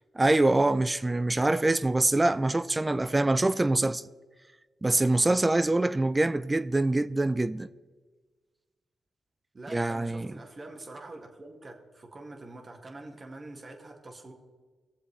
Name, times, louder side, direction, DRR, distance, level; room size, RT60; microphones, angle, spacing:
voice 1, 0.2-4.0 4.8-7.7 9.7-10.3, right 2 dB, 25° right, 0.4 m, -24 dB
voice 2, 9.5-14.3, right 2 dB, 40° right, 2.0 m, -45 dB
18.5 x 7.4 x 3.4 m
supercardioid pair, 45°, 0 cm